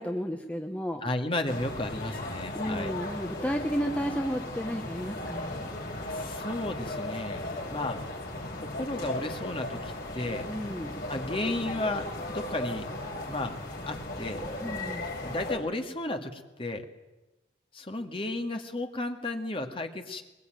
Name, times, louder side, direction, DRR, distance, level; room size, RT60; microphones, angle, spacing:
voice 1, 0.0-1.0 2.5-5.7 10.5-10.9 14.6-15.1, equal, 5° left, 4 dB, 1.0 m, -32 dB
voice 2, 1.0-2.9 6.1-8.0 8.6-10.5 11.1-12.9 13.2-13.6 13.9-14.4 15.2-16.9 17.7-20.2, left 2 dB, 30° left, 5 dB, 2.1 m, -33 dB
sound 1, 1.4-15.6, left 1 dB, 50° left, 6.2 m, -36 dB
22.0 x 21.5 x 9.2 m, 1.0 s
head